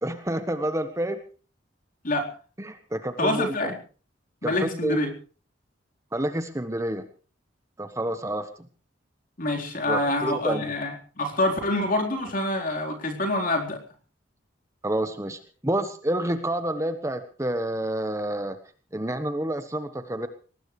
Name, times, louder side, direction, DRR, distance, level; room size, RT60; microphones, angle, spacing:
voice 1, 0.0-1.2 2.6-3.7 4.4-5.0 6.1-7.0 7.8-8.5 9.9-10.7 14.8-18.6 18.9-20.3, right 1 dB, 15° right, 9 dB, 1.2 m, -29 dB
voice 2, 3.2-3.8 4.4-5.1 9.4-13.8, left 1 dB, 45° left, 2 dB, 4.1 m, -26 dB
22.5 x 19.5 x 3.3 m, 0.38 s
head